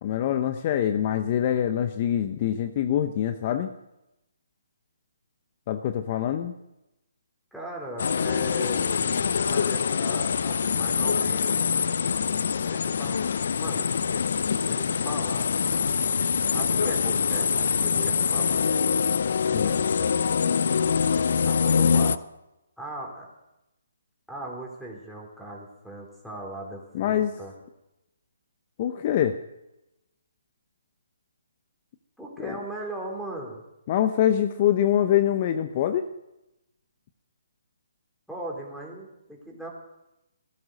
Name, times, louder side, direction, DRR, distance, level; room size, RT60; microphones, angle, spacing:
voice 1, 0.0-3.7 5.7-6.5 19.5-19.8 26.9-27.3 28.8-29.4 32.4-32.5 33.9-36.0, left 10 dB, 35° left, 9 dB, 0.9 m, -24 dB
voice 2, 7.5-11.6 12.6-13.2 13.5-13.9 14.7-15.5 16.5-19.0 19.6-20.2 21.1-22.2 22.8-23.3 24.3-27.5 32.2-33.6 38.3-39.7, right 1 dB, ahead, -2 dB, 3.8 m, -39 dB
sound 1, 8.0-22.2, left 6 dB, 60° left, 0.6 m, -24 dB
16.0 x 12.5 x 6.4 m, 0.91 s
figure-of-eight pair, 145°, 0 cm